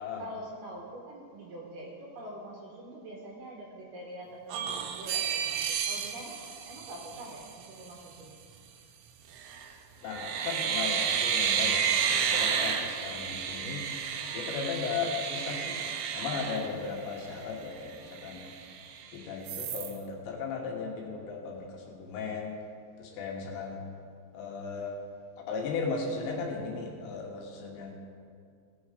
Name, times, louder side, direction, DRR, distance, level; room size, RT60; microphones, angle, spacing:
voice 1, 0.0-8.3, right 1 dB, 70° right, -2 dB, 2.6 m, -45 dB
sound 1, 4.5-7.5 9.3-9.7 10.1-17.3 17.8-17.9 18.1-19.0 19.5-19.9, right 7 dB, 85° right, 2.4 m, -31 dB
voice 2, 10.0-13.8 14.3-15.8 16.1-18.4 19.1-22.6 23.0-23.8 24.3-25.0 25.4-27.9, left 5 dB, 70° left, -1 dB, 3.2 m, -36 dB
17.5 x 6.5 x 5.0 m, 2.3 s
omnidirectional pair, 5.7 m